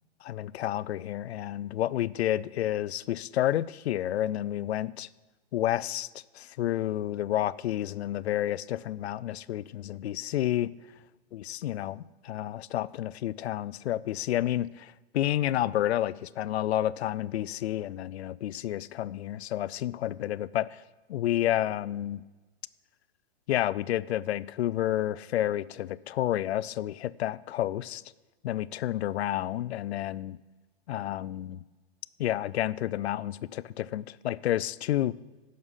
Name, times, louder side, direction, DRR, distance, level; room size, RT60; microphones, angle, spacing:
voice 1, 0.2-5.1 5.5-6.1 6.3-10.7 11.3-20.8 21.1-22.2 23.5-28.0 28.4-30.4 30.9-31.6 32.2-35.1, left 13 dB, 85° left, 19 dB, 0.5 m, -30 dB
11.0 x 6.5 x 5.5 m, 1.2 s
hypercardioid pair, 170°, 32 cm